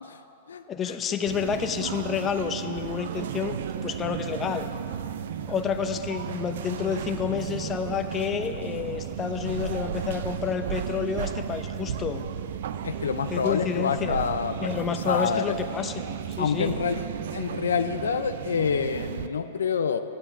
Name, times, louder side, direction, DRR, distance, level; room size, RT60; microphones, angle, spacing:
voice 1, 0.7-3.6 3.8-4.7 5.5-12.3 13.3-14.3 14.6-16.8, left 7 dB, 25° left, 8 dB, 0.7 m, -29 dB
sound 1, 1.3-19.3, right 8 dB, 70° right, 0.4 m, -34 dB
voice 2, 12.8-15.5 16.4-17.0 17.3-20.0, left 6 dB, 85° left, 9 dB, 0.5 m, -27 dB
10.5 x 7.6 x 7.0 m, 2.7 s
hypercardioid pair, 115°, 0 cm